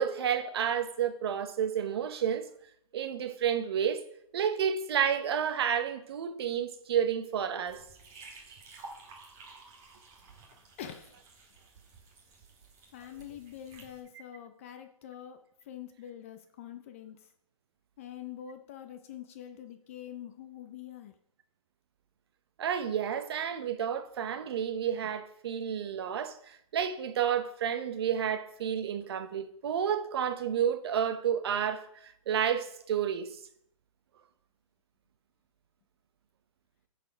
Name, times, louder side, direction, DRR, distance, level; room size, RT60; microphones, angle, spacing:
voice 1, 0.0-2.5 2.9-4.0 4.3-7.8 22.6-33.4, right 8 dB, 45° right, 0.8 m, -30 dB
sound 1, 7.7-14.0, right 3 dB, 20° right, 1.4 m, -53 dB
voice 2, 10.8-11.2 12.9-15.4 15.7-17.2 18.0-21.1, left 10 dB, 25° left, 0.4 m, -45 dB
10.0 x 4.2 x 5.0 m
hypercardioid pair, 160°, 18 cm